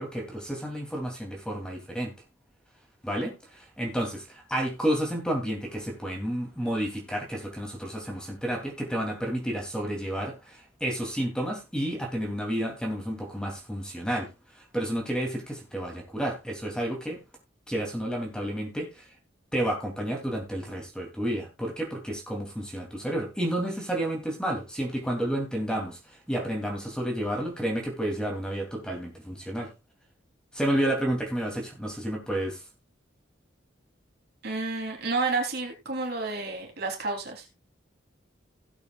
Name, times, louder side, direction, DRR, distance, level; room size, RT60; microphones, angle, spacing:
voice 1, 0.0-2.1 3.0-17.2 17.7-19.0 19.5-26.0 26.3-29.7 30.5-32.6, right 1 dB, 5° left, 2.7 m, -31 dB
voice 2, 34.4-37.5, right 3 dB, 55° right, 3.3 m, -30 dB
17.5 x 8.4 x 2.4 m
head